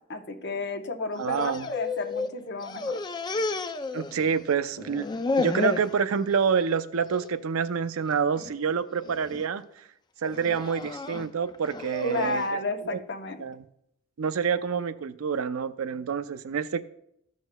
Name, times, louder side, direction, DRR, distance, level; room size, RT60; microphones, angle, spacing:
voice 1, 0.1-3.0 12.0-13.4, left 2 dB, 55° left, 6 dB, 0.8 m, -32 dB
sound 1, 1.2-2.3 2.6-4.5 4.8-5.9 6.4-6.8 7.1-7.3 8.1-8.5 9.0-9.4 10.2-12.4, left 3 dB, 20° left, 0.3 m, -32 dB
voice 2, 1.2-1.7 3.9-5.1 5.4-9.6 10.2-12.5 12.9-13.0 13.4-13.6 14.2-16.8, right 6 dB, 80° right, 12 dB, 0.5 m, -27 dB
14.0 x 6.3 x 2.2 m, 0.77 s
head